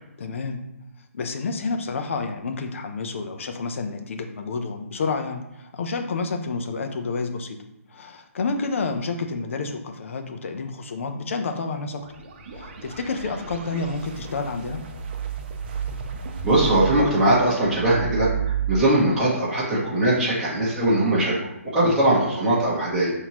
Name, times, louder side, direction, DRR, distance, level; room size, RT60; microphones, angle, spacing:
voice 1, 0.2-0.6 1.1-7.6 7.9-12.0 12.5-14.8 21.8-22.1, left 4 dB, 55° left, 5 dB, 0.7 m, -29 dB
sound 1, 11.9-18.8, right 8 dB, 40° right, 0.6 m, -32 dB
voice 2, 16.4-21.4 21.7-23.3, right 1 dB, 5° right, -12 dB, 1.2 m, -21 dB
5.7 x 2.8 x 3.0 m, 0.88 s
hypercardioid pair, 155°, 8 cm